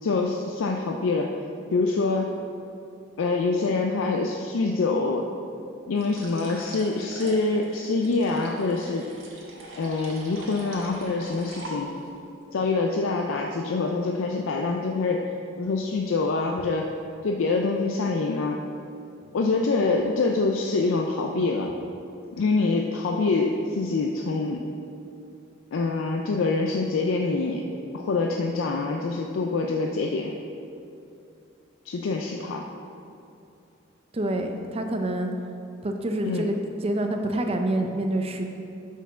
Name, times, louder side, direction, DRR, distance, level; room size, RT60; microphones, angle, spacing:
voice 1, 0.0-1.3 1.7-2.3 3.2-5.3 5.9-9.1 9.8-12.0 12.5-15.3 15.6-16.9 17.2-18.6 19.3-21.7 22.3-24.7 25.7-27.7 27.9-30.3 31.9-32.6 36.3-36.5, left 3 dB, 80° left, 2 dB, 0.4 m, -25 dB
sound 1, 5.9-12.2, right 1 dB, 85° right, 1.3 m, -43 dB
voice 2, 34.1-35.3 35.8-38.4, right 1 dB, 30° right, 4 dB, 0.5 m, -27 dB
5.6 x 4.7 x 6.0 m, 2.6 s
head